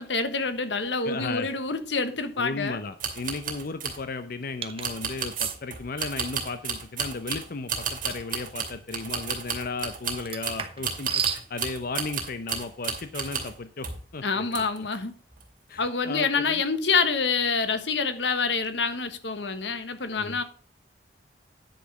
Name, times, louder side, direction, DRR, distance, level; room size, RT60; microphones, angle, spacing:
voice 1, 0.0-2.8 14.2-15.1 15.8-20.4, left 4 dB, 90° left, 1.3 m, -27 dB
voice 2, 1.0-1.5 2.4-14.9 15.7-16.6 20.2-20.4, left 3 dB, 55° left, 0.7 m, -35 dB
sound 1, 3.0-4.0 4.8-13.6 13.8-14.1 14.5-15.0 15.3-15.5, right 6 dB, 50° right, 2.6 m, -33 dB
sound 2, 4.6-4.9 5.3-5.6 8.1-8.3 10.2-11.4, right 7 dB, 35° right, 1.0 m, -31 dB
10.0 x 6.1 x 4.9 m
head